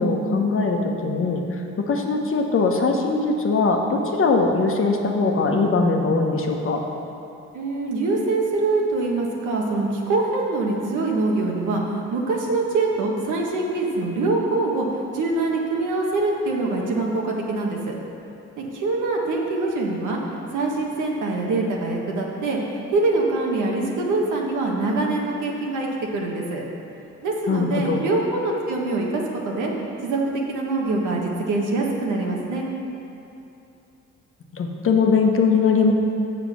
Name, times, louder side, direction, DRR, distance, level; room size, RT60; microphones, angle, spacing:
voice 1, 0.0-6.8 27.5-28.0 34.5-35.9, left 4 dB, 45° left, 2 dB, 1.1 m, -21 dB
voice 2, 7.5-11.8 12.1-14.9 15.1-17.9 18.6-20.2 20.5-26.6 27.2-29.7 30.0-32.7, right 3 dB, 80° right, -1 dB, 1.5 m, -24 dB
7.4 x 6.7 x 6.2 m, 2.8 s
cardioid pair, 90°, 30 cm